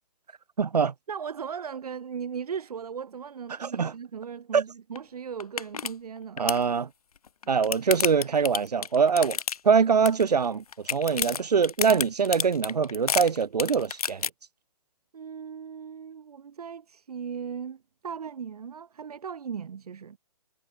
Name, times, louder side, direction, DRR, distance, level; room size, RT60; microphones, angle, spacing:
voice 1, 0.6-0.9 3.5-3.9 4.5-4.6 6.4-6.9 7.5-9.4 9.6-10.6 10.9-14.3, right 6 dB, 90° right, 1.6 m, -23 dB
voice 2, 1.1-6.5 15.1-20.2, right 7 dB, 70° right, 2.4 m, -37 dB
sound 1, 5.0-5.1 5.4-5.9 6.2-6.6 7.3-9.8 10.1-10.5 10.7-14.3, left 7 dB, 70° left, 2.7 m, -30 dB
hypercardioid pair, 160°, 20 cm